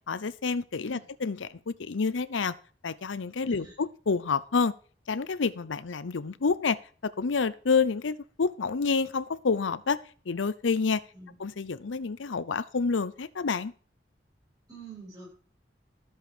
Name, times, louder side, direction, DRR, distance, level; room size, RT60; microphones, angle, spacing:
voice 1, 0.1-2.5 2.8-4.7 5.1-6.8 7.0-10.0 10.3-11.0 11.4-13.7, left 4 dB, 90° left, 17 dB, 0.6 m, -28 dB
voice 2, 14.7-15.3, right 4 dB, 20° right, -3 dB, 7.5 m, -47 dB
13.0 x 7.9 x 4.9 m, 0.42 s
head